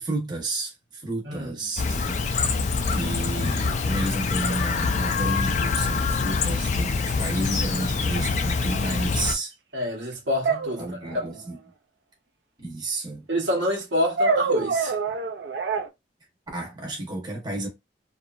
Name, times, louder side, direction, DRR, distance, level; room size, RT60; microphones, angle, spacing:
voice 1, 0.0-2.2 2.9-9.5 10.8-11.6 12.6-13.2 16.5-17.7, right 2 dB, 25° right, 0.8 m, -31 dB
voice 2, 1.2-1.5 9.7-11.3 13.3-15.0, left 1 dB, 80° right, 1.0 m, -27 dB
Chirp tweet, 1.8-9.4, left 4 dB, 40° left, 0.3 m, -25 dB
sound 1, 8.7-8.8 10.4-11.4 14.2-15.9, right 4 dB, 65° right, 0.4 m, -25 dB
2.7 x 2.4 x 2.3 m
head